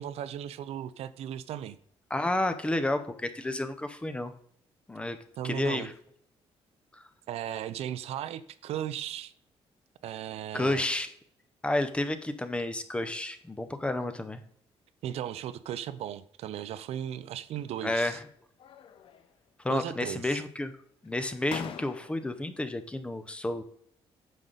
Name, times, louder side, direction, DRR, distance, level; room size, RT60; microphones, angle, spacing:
voice 1, 0.0-1.8 5.4-5.9 7.3-9.3 10.0-10.9 15.0-18.2 19.7-20.4, right 10 dB, 80° right, 14 dB, 0.6 m, -36 dB
voice 2, 2.1-4.3 4.9-5.2 5.4-5.9 6.9-7.1 10.5-11.1 11.6-14.4 17.8-18.2 19.6-20.7 21.0-23.6, left 1 dB, 10° left, 10 dB, 0.6 m, -31 dB
sound 1, 17.6-18.2 18.6-19.4 19.6-20.4 21.0-21.1 21.5-22.4, left 9 dB, 60° left, 0.7 m, -45 dB
9.4 x 6.5 x 3.9 m, 0.65 s
cardioid pair, 175°, 10 cm